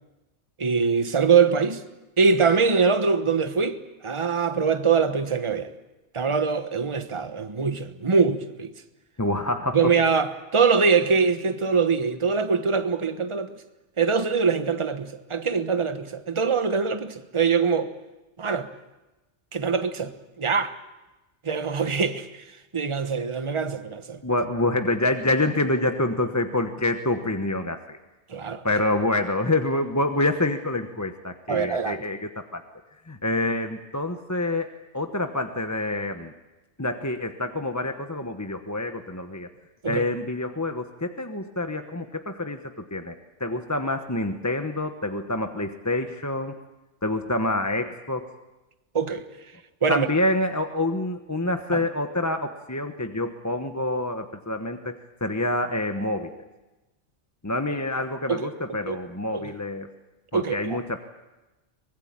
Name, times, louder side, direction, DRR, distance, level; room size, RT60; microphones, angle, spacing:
voice 1, 0.6-1.8 2.2-5.7 6.1-8.7 9.7-13.5 14.0-17.9 18.4-18.7 19.5-20.7 21.4-22.3 22.7-24.2 28.3-28.6 31.5-32.0 39.8-40.0 48.9-49.2 49.8-50.1 51.7-51.8 58.3-58.5 58.9-59.0 59.3-59.4 60.3-60.8, right 5 dB, 25° right, 1.2 m, -23 dB
voice 2, 9.2-9.9 24.2-28.0 28.6-32.6 33.1-36.3 36.8-39.5 39.8-43.1 43.4-46.6 47.0-48.3 49.9-56.3 57.4-59.9 60.3-61.0, left 2 dB, 15° left, 1.0 m, -27 dB
24.0 x 20.5 x 8.8 m
omnidirectional pair, 1.2 m